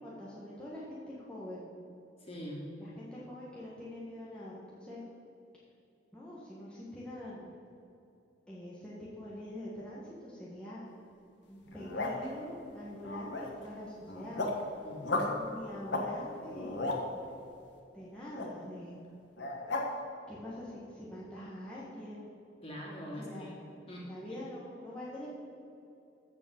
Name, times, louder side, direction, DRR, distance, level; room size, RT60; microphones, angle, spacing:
voice 1, 0.0-1.7 2.8-5.0 6.1-7.6 8.5-10.9 11.5-14.4 15.3-16.9 17.9-18.9 20.3-22.3 23.2-23.5 24.0-25.3, left 1 dB, 5° left, -8 dB, 1.5 m, -44 dB
voice 2, 2.2-2.7 14.8-15.3 18.5-18.6 22.6-23.5 23.9-24.1, equal, 30° left, -3 dB, 2.7 m, -43 dB
sound 1, 11.7-12.3 13.0-13.7 14.0-14.6 15.0-15.3 15.8-16.1 16.4-17.0 18.3-18.5 19.4-19.9, left 2 dB, 65° left, 1.5 m, -34 dB
14.0 x 5.1 x 7.2 m, 2.8 s
head